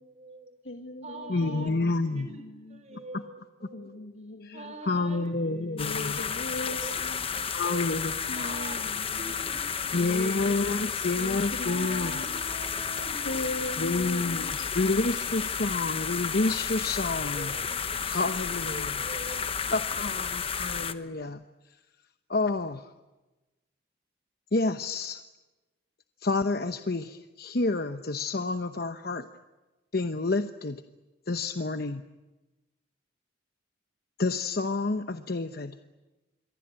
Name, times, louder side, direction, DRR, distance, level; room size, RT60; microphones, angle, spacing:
voice 1, 0.0-0.5 1.0-1.7 2.1-2.4 2.7-4.0 4.5-5.3 5.9-6.2 6.8-6.9 7.3-7.9 8.3-10.3 11.6-13.8 14.9-15.1 15.7-15.9 17.3-18.0 18.6-19.5, right 2 dB, 35° right, 9 dB, 4.2 m, -44 dB
voice 2, 0.6-3.0 3.7-4.7 5.5-7.3 8.3-9.4 9.9-12.4 13.2-14.7, left 2 dB, 80° left, 4 dB, 2.1 m, -39 dB
voice 3, 1.3-2.3 4.4-6.2 7.5-8.6 9.9-12.1 13.8-17.5 18.1-19.0 19.7-21.4 22.3-22.9 24.5-25.2 26.2-29.3 29.9-30.8 31.3-32.0 34.2-35.8, left 3 dB, 55° left, 8 dB, 0.9 m, -29 dB
sound 1, 5.8-20.9, left 6 dB, 30° left, 1.1 m, -32 dB
27.0 x 23.0 x 8.9 m, 1.1 s
head